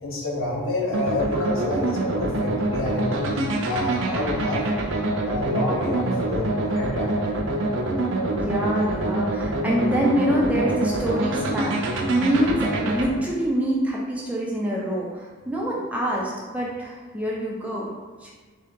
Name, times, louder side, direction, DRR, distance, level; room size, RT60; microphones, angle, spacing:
voice 1, 0.0-4.6 5.2-7.2, left 2 dB, 70° left, -3 dB, 1.0 m, -28 dB
sound 1, 0.9-13.1, right 2 dB, 65° right, 0.5 m, -25 dB
voice 2, 8.3-11.8 12.1-17.9 18.2-18.3, equal, 5° right, -4 dB, 0.5 m, -25 dB
3.8 x 2.8 x 3.6 m, 1.4 s
head